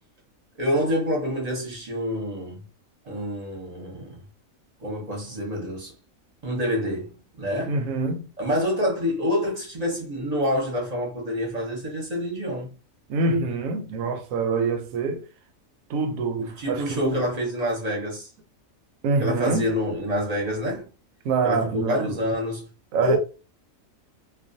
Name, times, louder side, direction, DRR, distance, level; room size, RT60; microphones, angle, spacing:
voice 1, 0.6-2.7 3.1-4.2 4.8-5.9 6.4-7.8 8.4-12.7 16.4-18.3 19.2-20.9 21.4-22.7 23.0-23.2, equal, 35° right, 0.7 m, -27 dB
voice 2, 7.7-8.3 13.1-15.2 15.9-17.2 19.0-19.7 21.2-22.2 22.9-23.2, right 4 dB, 75° right, 1.0 m, -25 dB
2.3 x 2.2 x 2.5 m
omnidirectional pair, 1.4 m